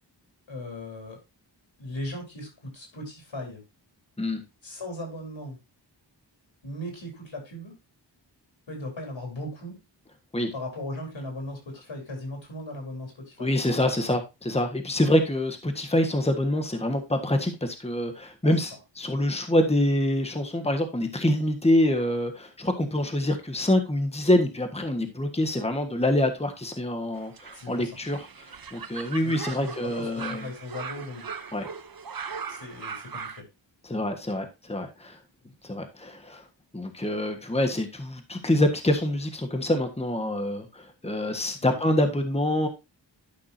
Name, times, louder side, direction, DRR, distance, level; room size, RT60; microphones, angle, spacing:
voice 1, 0.5-1.2 1.8-3.6 4.6-5.6 6.6-7.8 8.7-9.8 10.5-14.2 27.5-27.9 29.2-31.3 32.5-33.5 35.5-35.6 41.6-41.8, left 1 dB, 85° left, 2 dB, 4.0 m, -38 dB
voice 2, 13.4-28.2 28.7-30.4 31.5-31.7 33.8-35.2 35.6-36.4 36.7-42.7, left 1 dB, 15° left, 5 dB, 1.4 m, -26 dB
sound 1, 27.2-33.4, right 6 dB, 50° right, 0.9 m, -39 dB
12.0 x 6.0 x 2.7 m, 0.25 s
wide cardioid pair, 65°, 44 cm